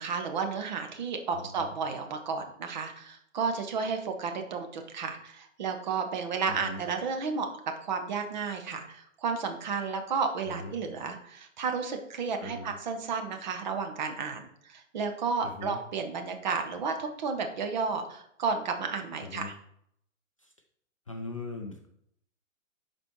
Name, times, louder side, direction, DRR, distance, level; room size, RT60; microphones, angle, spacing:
voice 1, 0.0-7.5 7.8-19.5, right 5 dB, 35° right, 5 dB, 0.9 m, -32 dB
voice 2, 1.3-1.7 6.5-6.8 10.5-10.7 12.4-12.8 15.4-15.8 19.2-19.5 20.4-20.5 21.1-21.9, left 3 dB, 25° left, 2 dB, 0.4 m, -40 dB
11.5 x 4.3 x 3.1 m, 0.71 s
figure-of-eight pair, 120°, 39 cm